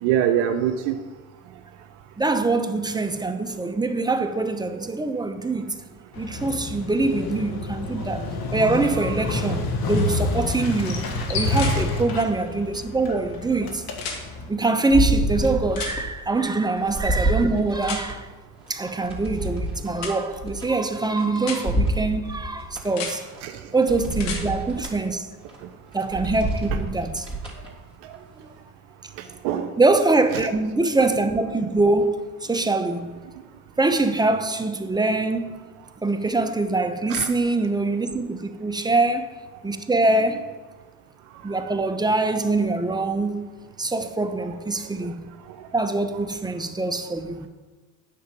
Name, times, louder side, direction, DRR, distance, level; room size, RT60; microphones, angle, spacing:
voice 1, 0.0-1.0 9.0-9.1 11.7-11.8 23.4-23.5 26.7-26.8 29.4-29.7 30.3-30.5 37.1-37.3, right 10 dB, 70° right, 0.8 m, -24 dB
voice 2, 2.2-5.7 6.2-13.8 14.5-18.3 18.7-23.2 23.7-25.3 25.9-27.3 28.4-28.5 29.8-33.2 33.8-35.6 36.0-39.3 39.6-40.5 41.4-43.5 43.8-45.3 45.7-47.5, right 2 dB, 10° right, 0.9 m, -24 dB
Motorcycle, 6.1-14.5, left 2 dB, 55° left, 1.7 m, -28 dB
sound 1, 10.0-10.1 11.5-11.8 13.9-14.2 15.7-16.0 17.8-18.0 20.0-20.1 21.4-21.6 22.8-23.1 24.1-24.4 26.5-26.6, left 5 dB, 75° left, 1.8 m, -32 dB
sound 2, 14.9-16.1 16.5-18.1 18.7-21.2 21.6-22.8 23.3-23.4 23.9-25.0 25.4-25.6 26.0-27.7 28.1-28.2, right 1 dB, 15° left, 3.4 m, -27 dB
9.4 x 6.7 x 5.2 m
hypercardioid pair, 65°, 44 cm